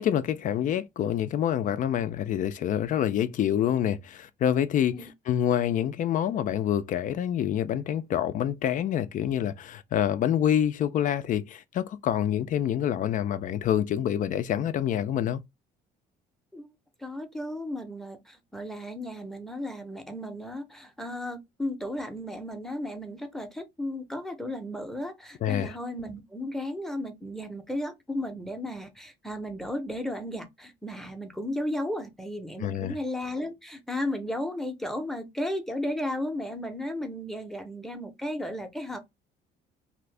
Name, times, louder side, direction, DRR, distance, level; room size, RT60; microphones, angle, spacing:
voice 1, 0.0-15.4 25.4-25.8 32.6-32.9, left 10 dB, 50° left, 0.4 m, -27 dB
voice 2, 17.0-39.0, left 1 dB, ahead, 0.7 m, -34 dB
2.8 x 2.5 x 3.2 m
cardioid pair, 110°, 17 cm